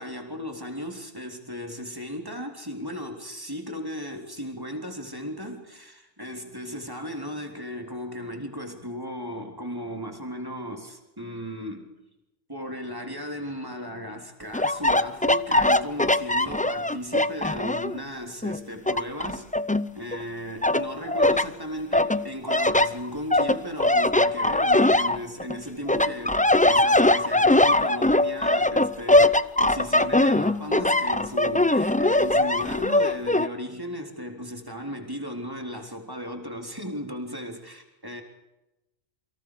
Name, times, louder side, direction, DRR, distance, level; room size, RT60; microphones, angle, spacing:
voice 1, 0.0-11.9 12.5-19.5 19.9-38.2, equal, 15° right, 4 dB, 3.7 m, -36 dB
sound 1, 14.5-18.0 18.4-20.2 20.6-21.5 21.9-25.6 25.9-33.5, left 1 dB, 10° left, 0.4 m, -21 dB
28.5 x 25.0 x 4.9 m, 0.95 s
omnidirectional pair, 1.4 m